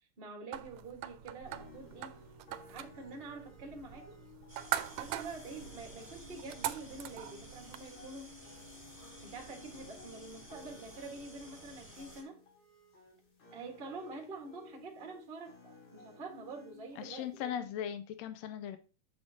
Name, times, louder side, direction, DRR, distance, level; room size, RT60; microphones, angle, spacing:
voice 1, 0.2-2.2 2.7-4.1 5.0-8.3 9.2-12.4 13.5-17.7, right 3 dB, 45° right, 0.7 m, -47 dB
sound 1, 0.5-7.8, right 13 dB, 80° right, 1.7 m, -42 dB
sound 2, 1.5-17.5, left 4 dB, 60° left, 4.4 m, -56 dB
sound 3, 4.5-12.2, right 1 dB, 5° left, 3.3 m, -54 dB
voice 2, 17.0-18.8, left 10 dB, 85° left, 1.5 m, -39 dB
7.8 x 7.1 x 2.8 m
omnidirectional pair, 3.6 m